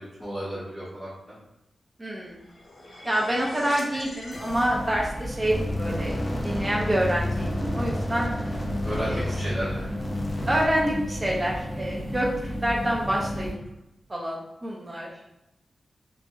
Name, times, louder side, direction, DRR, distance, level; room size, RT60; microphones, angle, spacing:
voice 1, 0.0-1.4 8.8-9.9, equal, 10° right, -10 dB, 0.9 m, -33 dB
voice 2, 2.0-2.4 3.0-8.3 9.0-9.2 10.5-12.3 12.6-13.5 14.1-15.1, right 1 dB, 25° right, -2 dB, 0.6 m, -27 dB
sound 1, 2.2-5.3, left 1 dB, 75° left, 0.7 m, -41 dB
sound 2, 4.5-13.5, equal, 55° right, 0.8 m, -33 dB
sound 3, 5.4-10.7, left 1 dB, 35° left, 0.4 m, -31 dB
2.5 x 2.0 x 3.6 m, 0.87 s
cardioid pair, 65°, 0 cm